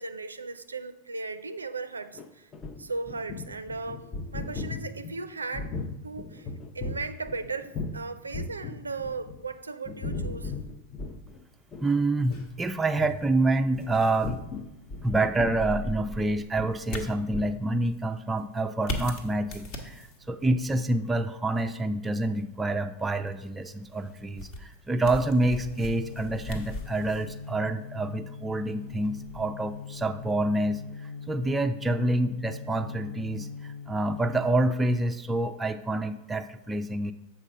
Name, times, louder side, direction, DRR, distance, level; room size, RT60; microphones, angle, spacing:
voice 1, 0.0-2.5 2.8-4.0 4.3-5.7 6.0-10.6, right 3 dB, 75° right, 11 dB, 0.4 m, -36 dB
sound 1, 2.1-8.0 8.3-9.5 9.9-11.4 11.7-11.9 12.2-12.4 13.0-13.2 13.7-17.1 17.3-17.5, left 3 dB, 25° left, 0.6 m, -37 dB
voice 2, 11.8-14.4 15.0-37.1, right 2 dB, 10° right, 7 dB, 0.4 m, -27 dB
sound 2, 12.3-30.4, left 1 dB, 45° left, 1.1 m, -42 dB
sound 3, 25.3-34.7, left 6 dB, 70° left, 0.5 m, -42 dB
7.1 x 4.6 x 5.4 m, 0.92 s
figure-of-eight pair, 90°, 0 cm